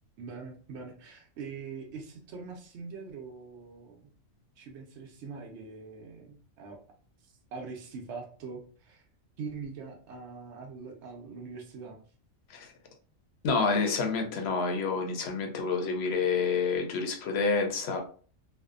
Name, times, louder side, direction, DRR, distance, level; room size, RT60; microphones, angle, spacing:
voice 1, 0.2-4.1 4.6-6.8 7.5-9.0 9.4-12.0, right 5 dB, 65° right, 1 dB, 0.8 m, -43 dB
voice 2, 13.4-18.0, left 4 dB, 65° left, 4 dB, 0.7 m, -28 dB
2.6 x 2.1 x 2.4 m, 0.41 s
omnidirectional pair, 1.4 m